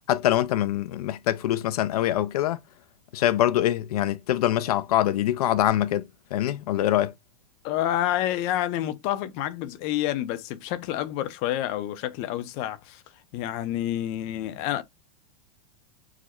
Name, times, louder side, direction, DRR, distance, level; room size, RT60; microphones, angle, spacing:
voice 1, 0.1-2.6 3.1-7.1, left 12 dB, 80° left, 0.5 m, -24 dB
voice 2, 7.6-13.0 13.3-14.8, left 12 dB, 35° left, 0.5 m, -28 dB
4.8 x 2.1 x 4.3 m
supercardioid pair, 160°, 19 cm